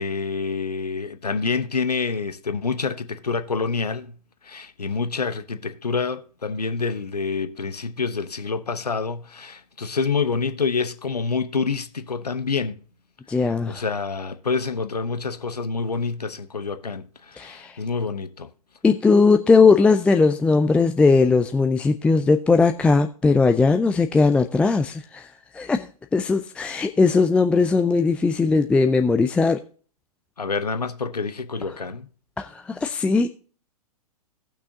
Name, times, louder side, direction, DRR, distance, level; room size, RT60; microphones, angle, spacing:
voice 1, 0.0-4.2 4.4-12.8 13.4-18.5 30.4-32.1, left 4 dB, 85° left, 0.9 m, -27 dB
voice 2, 13.3-13.8 17.4-17.8 18.8-25.3 25.5-25.9 26.1-29.6 32.4-33.3, left 4 dB, 5° left, 0.4 m, -19 dB
17.5 x 6.1 x 2.8 m
figure-of-eight pair, 110°, 20 cm